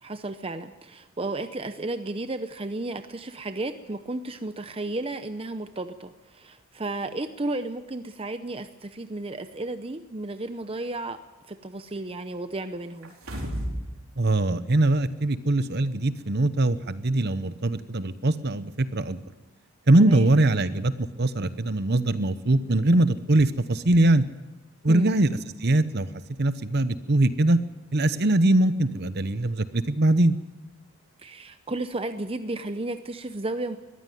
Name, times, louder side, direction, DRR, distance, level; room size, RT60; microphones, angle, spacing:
voice 1, 0.0-11.2 11.5-13.1 20.0-20.3 24.9-25.1 31.2-33.8, right 2 dB, 25° right, 9 dB, 0.7 m, -33 dB
sound 1, 13.0-13.9 14.3-14.4, equal, 75° right, 4.3 m, -32 dB
voice 2, 14.2-19.2 19.9-24.2 24.8-25.3 25.6-26.1 26.4-27.6 27.9-30.3, right 2 dB, 50° right, 13 dB, 0.9 m, -22 dB
21.5 x 15.0 x 9.3 m, 1.1 s
head